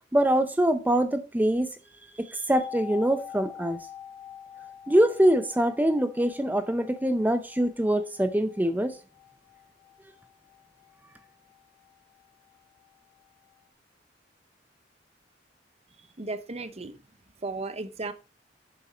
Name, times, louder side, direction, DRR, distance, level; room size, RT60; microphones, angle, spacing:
voice 1, 0.1-1.7 2.2-3.8 4.9-9.0, right 1 dB, 10° right, 0.6 m, -24 dB
sound 1, 2.5-12.3 12.5-12.6, left 8 dB, 80° left, 2.2 m, -46 dB
voice 2, 16.0-17.0 17.4-18.1, right 3 dB, 35° right, 0.9 m, -35 dB
7.4 x 7.1 x 5.0 m
head